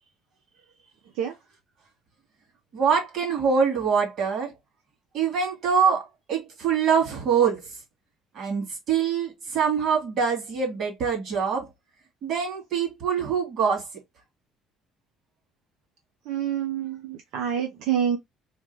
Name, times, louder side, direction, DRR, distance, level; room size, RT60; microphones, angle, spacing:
voice 1, 2.7-4.5 5.1-7.7 8.3-11.7 12.2-13.9, right 6 dB, 45° right, 2.6 m, -24 dB
voice 2, 16.3-18.2, right 8 dB, 75° right, 0.9 m, -27 dB
3.9 x 3.5 x 3.3 m
cardioid pair, 160°, 0 cm